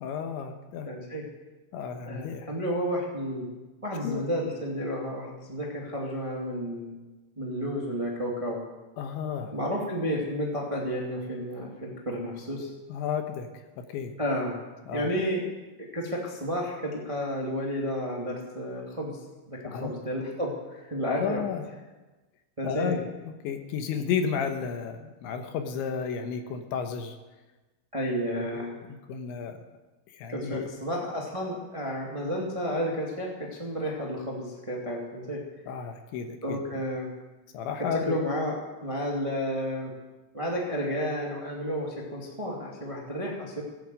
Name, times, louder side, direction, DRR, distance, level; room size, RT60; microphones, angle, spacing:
voice 1, 0.0-0.9 1.7-2.5 4.0-4.2 9.0-9.5 12.9-13.5 13.8-14.1 14.9-15.1 19.6-19.9 21.2-21.6 22.6-23.0 23.2-27.2 28.3-28.7 29.1-29.6 30.1-30.7 35.7-36.8 37.5-38.2, left 7 dB, 75° left, 6 dB, 3.2 m, -32 dB
voice 2, 0.8-1.2 2.0-3.5 3.8-6.9 7.4-8.6 9.5-12.7 14.2-14.6 14.9-15.4 15.8-19.2 19.4-21.4 22.6-23.0 27.9-28.7 30.3-35.4 36.4-37.1 37.9-39.9 40.3-43.6, equal, 35° right, -2 dB, 0.5 m, -31 dB
17.0 x 10.5 x 7.9 m, 1.2 s
omnidirectional pair, 5.8 m